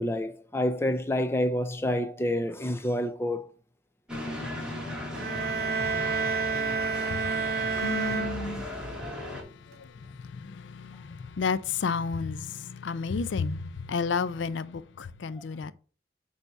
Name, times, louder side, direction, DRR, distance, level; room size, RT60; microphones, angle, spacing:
voice 1, 0.0-3.5, left 1 dB, 15° left, 0.4 m, -28 dB
sound 1, 4.1-9.4, left 1 dB, 5° right, 1.5 m, -37 dB
sound 2, 5.1-9.0, right 5 dB, 55° right, 0.7 m, -30 dB
voice 2, 5.9-6.5 7.1-7.2 7.8-8.7 9.7-15.7, left 5 dB, 85° left, 0.4 m, -32 dB
8.0 x 2.8 x 5.5 m
head